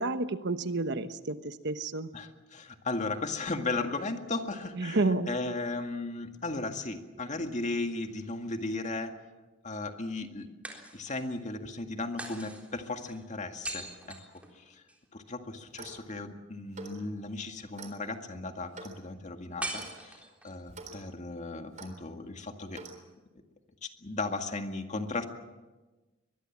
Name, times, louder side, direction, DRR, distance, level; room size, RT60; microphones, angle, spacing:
voice 1, 0.0-2.1 4.8-5.3, right 2 dB, 60° right, 10 dB, 1.1 m, -30 dB
voice 2, 2.1-9.1 9.6-10.5 10.9-14.2 14.6-14.8 15.1-22.8 23.8-25.2, left 3 dB, 40° left, 5 dB, 2.0 m, -36 dB
sound 1, 7.5-8.6 10.6-11.4 12.2-15.0 19.6-20.7, right 1 dB, 5° right, 3.8 m, -42 dB
Clock, 15.6-16.1 16.7-17.0 17.8-18.0 18.7-19.0 19.8-19.9 20.7-21.0 21.8-21.9 22.7-23.0, right 3 dB, 40° right, 3.7 m, -45 dB
23.5 x 21.0 x 7.4 m, 1.2 s
head